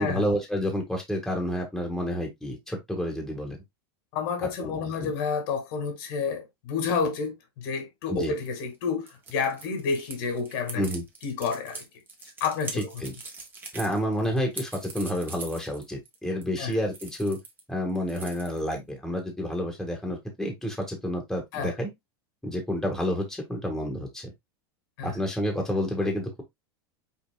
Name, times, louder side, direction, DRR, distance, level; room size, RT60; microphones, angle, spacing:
voice 1, 0.0-3.6 4.4-5.1 8.1-8.3 10.7-11.0 12.7-13.1 13.7-17.4 17.7-21.9 22.4-24.3 25.0-26.4, equal, 5° left, 1.6 m, -29 dB
voice 2, 4.1-10.8 11.2-11.8 12.4-12.9 16.6-16.7 21.5-21.7 25.0-25.1, left 5 dB, 65° left, 2.2 m, -30 dB
sound 1, 8.2-17.6 17.9-18.9, right 3 dB, 15° right, 1.4 m, -42 dB
5.6 x 3.9 x 2.3 m
supercardioid pair, 140°, 13 cm